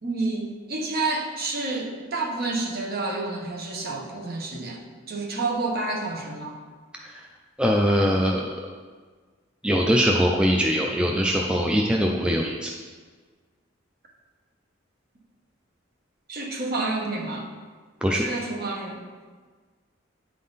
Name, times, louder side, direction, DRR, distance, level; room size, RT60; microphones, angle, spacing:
voice 1, 0.0-6.6 16.3-17.5 18.1-19.2, right 3 dB, 45° right, 0 dB, 1.1 m, -29 dB
voice 2, 7.6-8.5 9.6-12.7 18.0-18.3, equal, 5° right, -1 dB, 0.3 m, -22 dB
9.4 x 3.7 x 4.0 m, 1.5 s
head